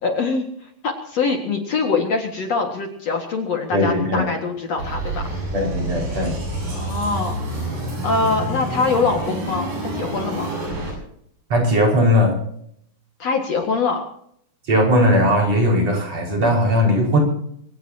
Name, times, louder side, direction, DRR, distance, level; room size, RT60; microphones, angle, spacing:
voice 1, 0.0-5.2 6.7-7.3 8.0-10.5 13.2-14.0, left 4 dB, 50° left, 2 dB, 2.7 m, -23 dB
voice 2, 3.7-4.3 5.5-6.4 11.5-12.3 14.7-17.2, equal, 45° right, 0 dB, 6.4 m, -18 dB
sound 1, 4.8-10.9, right 1 dB, 65° right, 9.1 m, -28 dB
24.0 x 17.5 x 2.9 m, 0.68 s
omnidirectional pair, 4.1 m